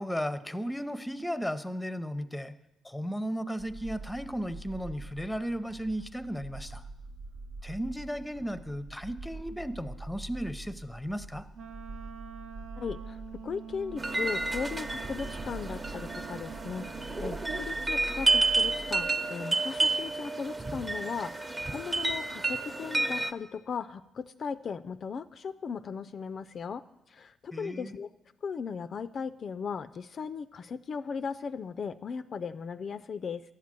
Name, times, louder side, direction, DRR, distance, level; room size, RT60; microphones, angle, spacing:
voice 1, 0.0-2.5 2.8-6.8 7.6-11.5 27.5-27.9, equal, 5° left, 12 dB, 0.6 m, -35 dB
sound 1, 3.6-19.1, right 2 dB, 90° right, 1.6 m, -45 dB
Wind instrument woodwind instrument, 11.5-17.6, right 6 dB, 70° right, 0.7 m, -46 dB
voice 2, 12.8-26.8 27.1-28.1 28.4-33.4, left 6 dB, 50° left, 12 dB, 0.3 m, -37 dB
sound 2, 14.0-23.3, right 3 dB, 25° right, 0.8 m, -30 dB
11.0 x 7.2 x 7.5 m, 0.92 s
cardioid pair, 90°, 0 cm